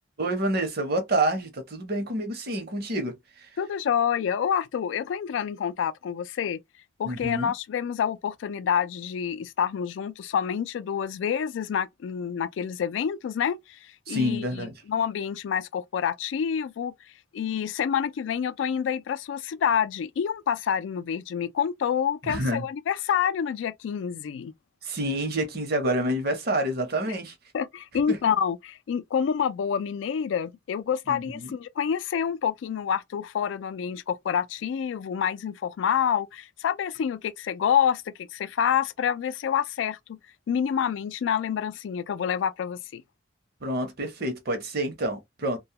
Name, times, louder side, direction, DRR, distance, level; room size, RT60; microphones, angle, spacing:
voice 1, 0.2-3.5 7.0-7.5 14.1-14.7 22.2-22.6 24.8-27.3 28.1-28.2 31.1-31.5 43.6-45.6, right 1 dB, 55° right, 0.8 m, -28 dB
voice 2, 3.6-6.6 7.0-13.8 14.1-16.9 17.3-24.5 27.5-40.2 40.5-43.0, left 8 dB, 80° left, 0.3 m, -27 dB
2.2 x 2.1 x 2.8 m
head